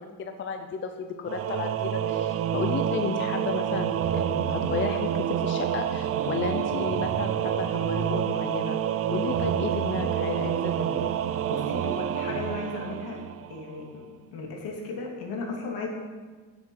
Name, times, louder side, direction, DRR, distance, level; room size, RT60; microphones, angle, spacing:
voice 1, 0.0-8.8 9.1-11.1, left 6 dB, 30° left, 6 dB, 0.7 m, -33 dB
Singing / Musical instrument, 1.3-13.7, right 10 dB, 40° right, 0.5 m, -28 dB
voice 2, 11.4-13.2 13.5-14.0 14.3-15.9, left 3 dB, 70° left, 0 dB, 3.1 m, -35 dB
15.5 x 8.0 x 5.6 m, 1.4 s
cardioid pair, 165°, 37 cm